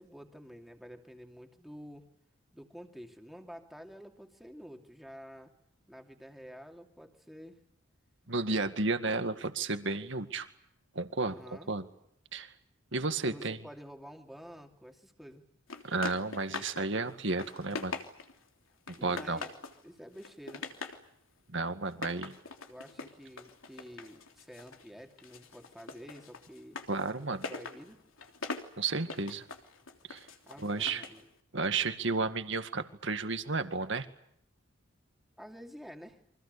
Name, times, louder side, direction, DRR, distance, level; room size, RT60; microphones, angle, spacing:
voice 1, 0.0-2.0 2.5-5.5 5.9-7.6 11.2-11.7 13.2-15.4 19.0-19.5 19.8-20.7 22.7-26.8 27.5-28.0 30.4-31.3 35.4-36.2, equal, ahead, 3 dB, 2.6 m, -49 dB
voice 2, 8.3-10.5 11.0-11.4 11.7-11.8 12.3-12.5 12.9-13.6 15.8-17.9 19.0-19.4 21.5-22.3 26.9-27.4 28.8-29.4 30.1-30.3 30.6-31.0 31.5-34.1, right 3 dB, 60° right, 9 dB, 2.0 m, -32 dB
sound 1, 15.7-16.9 17.2-18.4 18.9-19.8 20.2-21.0 21.9-24.9 25.2-31.2, left 4 dB, 75° left, 3.3 m, -43 dB
29.5 x 25.0 x 6.8 m, 0.71 s
head